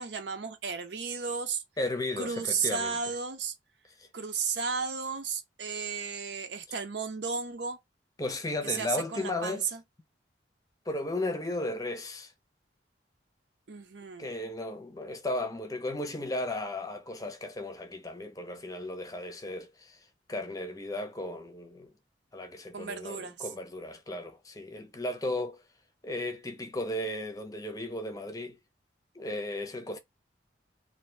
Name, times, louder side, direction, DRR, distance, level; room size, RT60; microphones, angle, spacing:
voice 1, 0.0-1.6 2.2-3.5 4.1-7.8 8.6-9.8 13.7-14.3 22.7-23.5, right 5 dB, 70° right, 0.7 m, -33 dB
voice 2, 1.8-3.0 4.0-4.1 8.2-9.7 10.9-12.3 14.2-20.0 20.3-21.9 22.3-25.6 26.0-28.6 29.1-30.0, left 2 dB, 20° left, 0.7 m, -35 dB
2.7 x 2.7 x 3.3 m
head